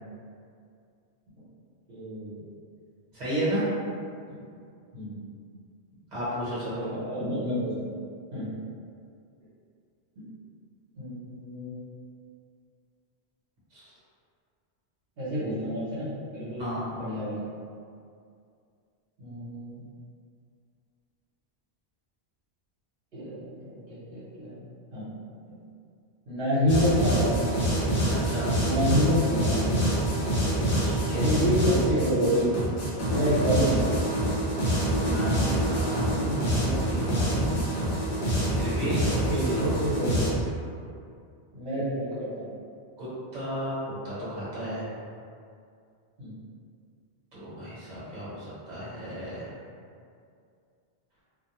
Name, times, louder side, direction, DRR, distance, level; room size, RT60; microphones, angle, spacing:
voice 1, 1.9-2.5 4.3-4.4 4.9-5.3 6.8-7.9 8.3-8.5 11.0-11.9 15.2-17.4 19.2-19.8 23.1-24.5 24.9-25.1 25.4-25.6 26.3-27.5 28.6-29.7 31.2-32.5 33.0-34.0 39.3-40.5 41.5-42.5 46.2-46.3, equal, 65° right, -11 dB, 1.0 m, -28 dB
voice 2, 3.1-3.7 6.1-6.8 13.7-13.9 16.6-17.0 28.1-28.5 30.8-31.3 35.0-37.5 38.5-39.7 43.0-43.8 44.0-44.9 47.4-49.5, right 1 dB, 40° right, -10 dB, 1.0 m, -33 dB
sound 1, 26.7-40.3, right 1 dB, 60° left, 0.8 m, -26 dB
2.4 x 2.1 x 2.9 m, 2.3 s
omnidirectional pair, 1.1 m